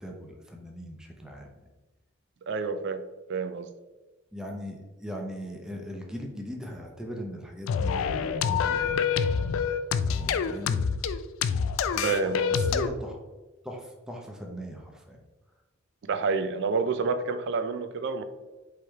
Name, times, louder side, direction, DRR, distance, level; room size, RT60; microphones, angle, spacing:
voice 1, 0.0-1.7 4.3-9.2 10.1-10.9 11.8-12.1 12.5-13.2 13.6-15.2, equal, 5° right, 0 dB, 0.6 m, -39 dB
voice 2, 2.5-3.0 3.3-3.7 12.0-12.5 16.0-18.2, right 4 dB, 60° right, 10 dB, 0.4 m, -28 dB
sound 1, 7.7-12.9, left 6 dB, 85° left, 0.3 m, -26 dB
4.8 x 3.2 x 3.4 m, 1.2 s
head